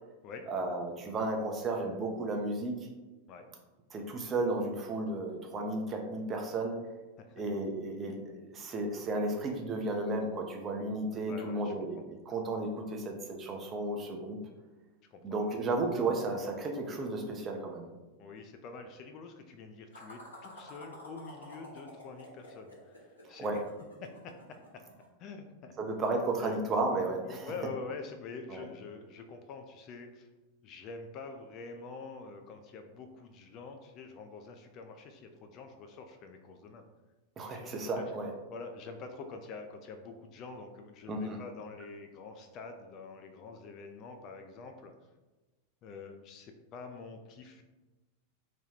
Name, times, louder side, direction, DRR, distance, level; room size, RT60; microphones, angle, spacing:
voice 1, 0.5-2.8 3.9-6.8 7.4-14.4 15.2-17.9 23.4-23.6 25.8-27.5 28.5-28.7 37.4-38.3 41.1-41.4, right 2 dB, 25° right, 2 dB, 0.5 m, -33 dB
voice 2, 11.3-11.9 15.1-15.2 18.2-23.6 24.0-24.6 25.2-25.7 26.4-26.6 27.2-30.3 30.6-36.8 37.5-38.0 38.5-44.9 45.8-47.6, left 4 dB, 35° left, 6 dB, 0.3 m, -46 dB
sound 1, 19.9-25.0, left 1 dB, 80° left, 0.8 m, -50 dB
2.9 x 2.2 x 3.4 m, 1.1 s
figure-of-eight pair, 90°, 0 cm